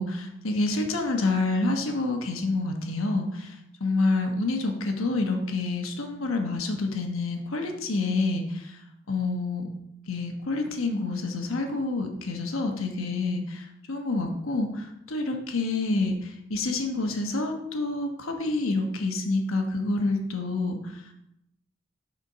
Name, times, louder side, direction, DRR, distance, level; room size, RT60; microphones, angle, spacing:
voice 1, 0.0-8.8 9.1-9.7 10.1-21.1, left 2 dB, 80° left, 4 dB, 1.1 m, -28 dB
6.6 x 4.4 x 5.5 m, 0.80 s
head